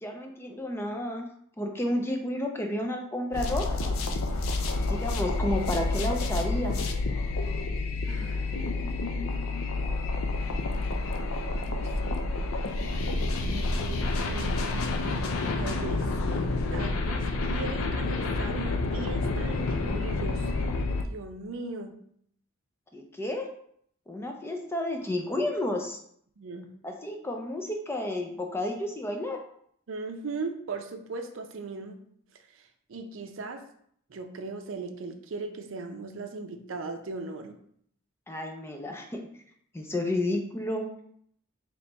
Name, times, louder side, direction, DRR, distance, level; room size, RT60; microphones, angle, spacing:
voice 1, 0.0-1.3 1.6-4.0 4.9-6.8 13.5-13.8 22.9-23.5 24.1-26.0 26.8-29.4 38.3-39.3 39.7-40.9, left 1 dB, 10° left, 3 dB, 0.4 m, -31 dB
sound 1, 3.3-21.0, left 2 dB, 85° left, 0.5 m, -29 dB
voice 2, 8.0-8.5 11.7-12.2 13.4-14.9 15.6-16.1 16.7-20.5 21.1-22.0 26.4-26.7 29.9-32.0 32.5-32.6 32.9-33.6 34.1-37.5, right 3 dB, 65° right, 6 dB, 0.5 m, -38 dB
4.1 x 3.0 x 3.3 m, 0.66 s
head